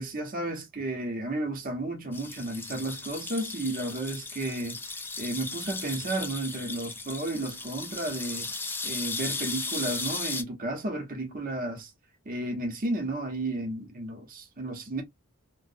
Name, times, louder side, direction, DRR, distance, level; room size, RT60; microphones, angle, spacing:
voice 1, 0.0-4.8 5.2-8.5 8.8-11.9 12.3-15.0, right 2 dB, 40° right, 0.7 m, -33 dB
sound 1, 2.1-10.4, left 3 dB, 10° left, 0.3 m, -36 dB
2.5 x 2.0 x 2.6 m
head